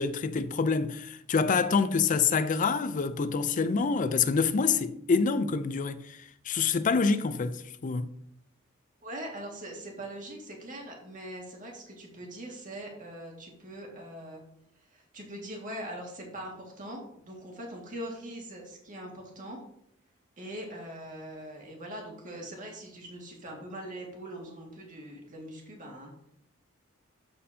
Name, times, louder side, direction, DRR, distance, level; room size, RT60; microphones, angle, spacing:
voice 1, 0.0-6.2 6.4-8.1, left 5 dB, 40° left, 0.4 m, -26 dB
voice 2, 9.0-14.4 14.9-19.6 20.4-26.1, right 1 dB, 40° right, 1.9 m, -42 dB
12.5 x 4.3 x 2.8 m
head